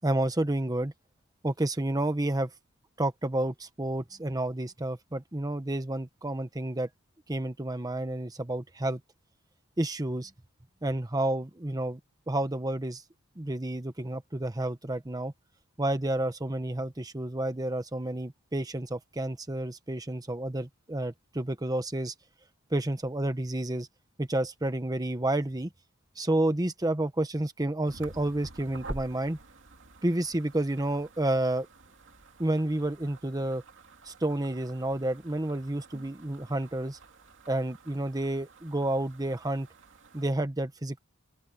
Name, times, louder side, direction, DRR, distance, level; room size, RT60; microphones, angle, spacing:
voice 1, 0.0-0.9 1.4-2.5 3.0-6.9 7.3-9.0 9.8-10.3 10.8-12.0 12.3-13.0 13.4-15.3 15.8-22.1 22.7-23.9 24.2-25.7 26.2-29.4 30.0-31.7 32.4-33.6 34.1-37.0 37.5-39.7 40.1-41.0, right 1 dB, 20° right, 1.1 m, -30 dB
sound 1, 27.8-40.3, right 2 dB, 65° right, 2.7 m, -49 dB
head